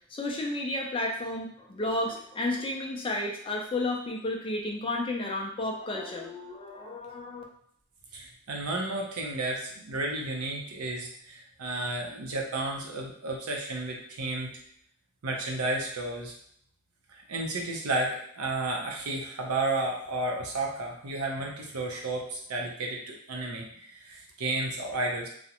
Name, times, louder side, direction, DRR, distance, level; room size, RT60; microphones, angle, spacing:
voice 1, 0.1-7.4, left 2 dB, 25° left, 0 dB, 0.3 m, -32 dB
voice 2, 8.1-14.6 15.2-16.3 17.1-25.3, right 2 dB, 85° right, 0 dB, 0.6 m, -32 dB
2.5 x 2.1 x 2.8 m, 0.67 s
head